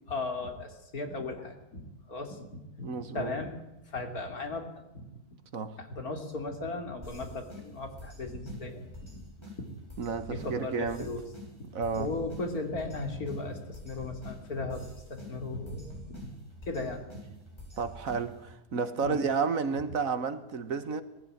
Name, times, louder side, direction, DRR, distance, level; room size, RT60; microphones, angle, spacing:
voice 1, 0.1-1.8 2.1-2.5 2.8-3.6 3.9-4.7 4.9-5.0 5.8-9.2 9.6-9.7 10.3-11.2 11.9-16.3 16.7-17.0 19.0-19.2, left 2 dB, 70° left, 3.3 m, -36 dB
voice 2, 2.8-3.4 5.5-5.8 10.0-11.1 11.7-12.1 17.8-21.0, right 5 dB, 65° right, 1.7 m, -31 dB
sound 1, 7.0-18.5, equal, 15° left, 6.7 m, -48 dB
19.5 x 15.0 x 9.2 m
omnidirectional pair, 1.6 m